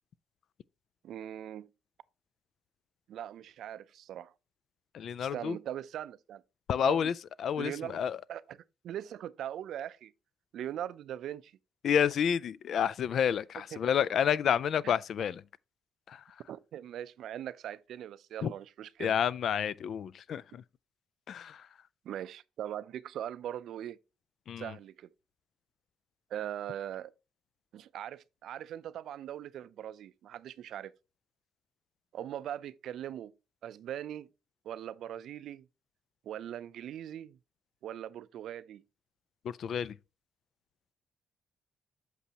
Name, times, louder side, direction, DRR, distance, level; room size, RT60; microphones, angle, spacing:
voice 1, 1.0-1.7 3.1-4.3 5.2-6.4 6.8-7.1 7.6-8.6 8.8-10.1 10.5-11.5 13.7-13.8 14.8-14.9 16.5-19.1 22.0-24.0 24.6-25.1 26.3-27.1 27.7-30.9 32.1-33.3 33.6-34.3 34.6-35.7 36.3-37.4 37.8-38.8, right 11 dB, 75° right, 0.4 m, -40 dB
voice 2, 4.9-5.6 6.7-7.1 7.4-8.2 11.8-15.4 16.1-16.2 18.4-18.5 19.0-20.6 21.3-21.7 24.5-24.8 39.4-39.9, left 8 dB, 65° left, 0.3 m, -29 dB
8.2 x 6.1 x 2.8 m
cardioid pair, 90°, 0 cm